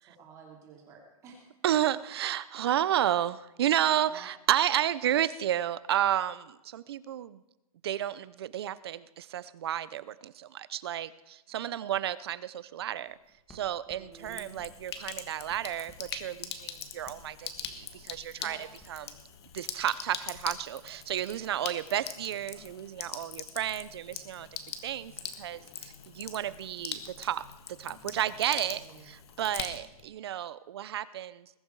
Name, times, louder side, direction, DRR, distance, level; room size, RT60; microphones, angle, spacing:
voice 1, 0.0-1.5 4.0-4.3 11.6-11.8 13.9-14.5 18.4-18.6 28.2-29.1, right 5 dB, 15° right, -1 dB, 2.8 m, -52 dB
voice 2, 1.6-7.4 7.8-13.1 13.5-18.6 18.9-19.0 19.5-24.5 24.8-25.1 25.4-27.4 27.7-28.8 29.1-31.6, right 11 dB, 45° right, 17 dB, 0.6 m, -31 dB
Writing, 12.9-19.1, equal, 5° left, 1.9 m, -59 dB
Sink (filling or washing), 14.1-30.1, left 8 dB, 45° left, 1.5 m, -43 dB
20.5 x 11.5 x 4.7 m, 0.95 s
hypercardioid pair, 175°, 19 cm